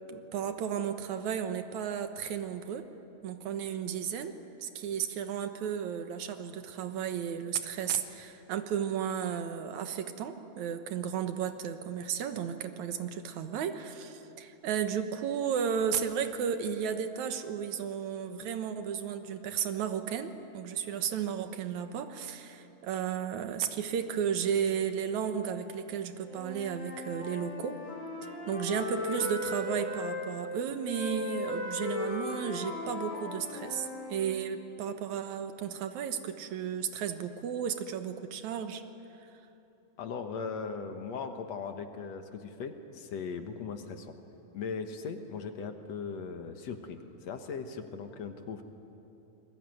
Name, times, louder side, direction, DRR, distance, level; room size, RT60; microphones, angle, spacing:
voice 1, 0.1-2.8 3.2-4.3 4.6-27.7 28.5-38.8, right 8 dB, 80° right, 8 dB, 2.6 m, -34 dB
Wind instrument woodwind instrument, 26.2-30.2 30.8-34.4, left 2 dB, 85° left, 6.2 m, -37 dB
voice 2, 40.0-44.1 44.5-48.6, left 5 dB, 65° left, 6 dB, 2.4 m, -39 dB
27.0 x 21.0 x 9.3 m, 2.9 s
omnidirectional pair, 3.4 m